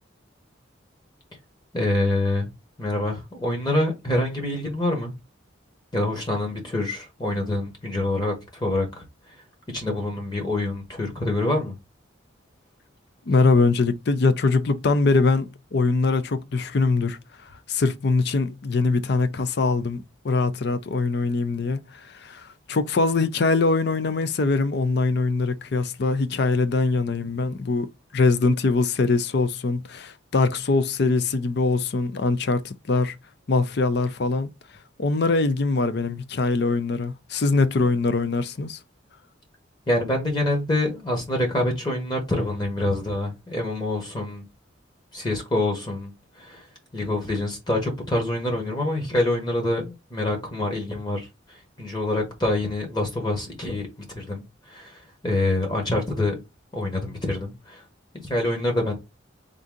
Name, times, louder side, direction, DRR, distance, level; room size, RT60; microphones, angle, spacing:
voice 1, 1.7-2.5 2.8-5.1 5.9-9.3 9.7-11.7 20.6-20.8 39.9-44.4 45.1-46.7 46.9-53.9 54.1-56.4 56.7-57.8 58.2-58.9, left 1 dB, 20° left, 1.0 m, -26 dB
voice 2, 13.3-27.9 28.1-33.2 33.5-34.5 35.0-38.8, left 3 dB, 55° left, 0.4 m, -23 dB
3.7 x 2.6 x 3.7 m
head